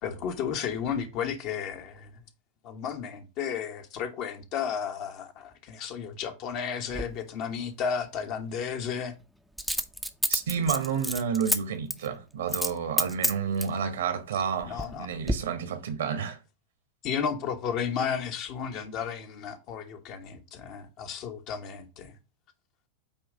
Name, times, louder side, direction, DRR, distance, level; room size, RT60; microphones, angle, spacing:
voice 1, 0.0-2.1 2.6-9.1 14.7-15.1 17.0-22.1, left 7 dB, 40° left, 1.2 m, -33 dB
Coin (dropping), 6.9-7.1 9.6-11.6 11.9-12.1 12.5-12.7 13.0-13.8 14.4-15.0 15.3-15.4, equal, ahead, 0.7 m, -28 dB
voice 2, 10.3-16.4, right 7 dB, 65° right, 1.2 m, -30 dB
8.6 x 3.2 x 5.0 m
figure-of-eight pair, 90°, 0 cm